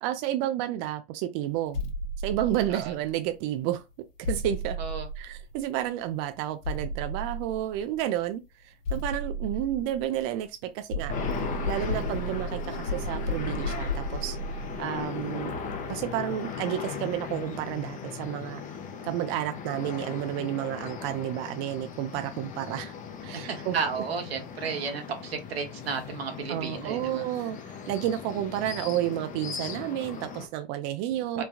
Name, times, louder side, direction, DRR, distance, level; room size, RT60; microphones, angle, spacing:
voice 1, 0.0-1.8 2.2-3.8 4.2-4.8 5.2-11.1 11.7-14.4 14.8-15.5 15.9-18.6 19.0-22.9 23.2-23.8 26.5-31.4, right 12 dB, 45° right, 0.4 m, -31 dB
sound 1, 1.7-3.2 4.2-5.9 6.6-8.0 8.8-10.4 10.9-16.2, equal, 65° left, 0.8 m, -34 dB
sound 2, 11.1-30.5, left 7 dB, 25° left, 0.6 m, -38 dB
voice 2, 23.3-27.3 31.4-31.5, right 6 dB, 85° right, 1.0 m, -33 dB
3.2 x 2.1 x 2.5 m
hypercardioid pair, 105°, 30 cm